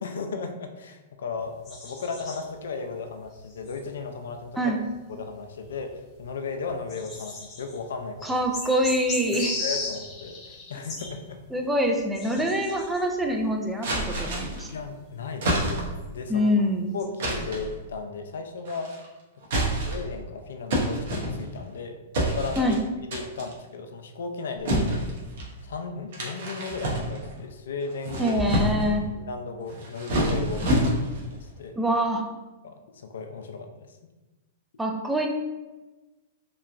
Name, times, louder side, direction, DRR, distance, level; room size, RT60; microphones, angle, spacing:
voice 1, 0.0-4.7 5.1-8.4 9.3-11.4 14.7-16.7 16.9-19.0 19.6-22.8 23.1-25.1 25.6-28.4 29.1-30.9 31.3-31.8 32.6-33.9, left 4 dB, 80° left, 6 dB, 0.3 m, -35 dB
sound 1, 1.4-4.4 4.7-17.0, left 3 dB, 25° left, 0.8 m, -38 dB
voice 2, 8.2-9.5 11.5-14.7 16.3-16.9 22.6-22.8 28.2-29.1 31.8-32.3 34.8-35.3, equal, 5° right, 2 dB, 0.4 m, -25 dB
sound 2, 13.8-14.7 15.4-16.1 17.2-17.7 18.6-19.0 19.4-20.1 20.7-21.7 22.1-22.8 23.1-23.5 24.6-25.5 26.1-27.4 27.9-29.0 29.7-31.3, right 1 dB, 65° right, 0.7 m, -27 dB
2.9 x 2.2 x 2.4 m, 1.2 s
hypercardioid pair, 125°, 0 cm